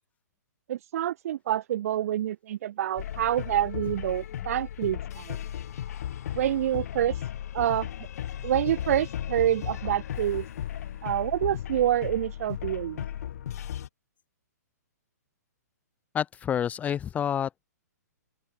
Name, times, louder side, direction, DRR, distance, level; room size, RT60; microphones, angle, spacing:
voice 1, 0.7-5.4 6.3-7.1 7.5-7.9 8.4-10.5 11.0-13.0, right 12 dB, 55° right, 1.6 m, -27 dB
sound 1, 3.0-13.9, left 10 dB, 60° left, 2.9 m, -35 dB
voice 2, 16.1-17.6, left 9 dB, 15° left, 0.6 m, -28 dB
open air
hypercardioid pair, 135°, 9 cm